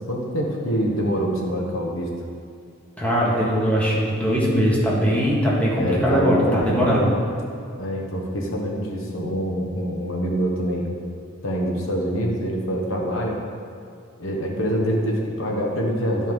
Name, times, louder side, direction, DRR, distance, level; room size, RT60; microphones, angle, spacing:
voice 1, 0.1-2.1 5.7-7.0 7.8-10.9 11.4-13.4 14.2-16.3, equal, 70° left, -1 dB, 1.2 m, -25 dB
voice 2, 3.0-7.1, equal, 5° left, -6 dB, 1.7 m, -20 dB
12.0 x 5.6 x 3.7 m, 2.3 s
head